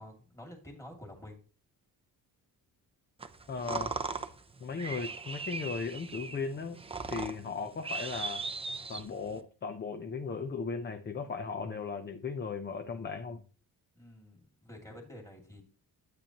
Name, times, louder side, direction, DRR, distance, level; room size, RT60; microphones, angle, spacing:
voice 1, 0.0-1.4 13.9-15.6, left 1 dB, 10° left, 0 dB, 2.5 m, -49 dB
sound 1, 3.2-9.4, right 4 dB, 15° right, 0.6 m, -39 dB
voice 2, 3.5-3.9 4.6-6.8 7.1-8.4 8.9-13.4, left 5 dB, 25° left, 7 dB, 0.7 m, -37 dB
11.5 x 8.8 x 3.0 m, 0.38 s
wide cardioid pair, 165°, 38 cm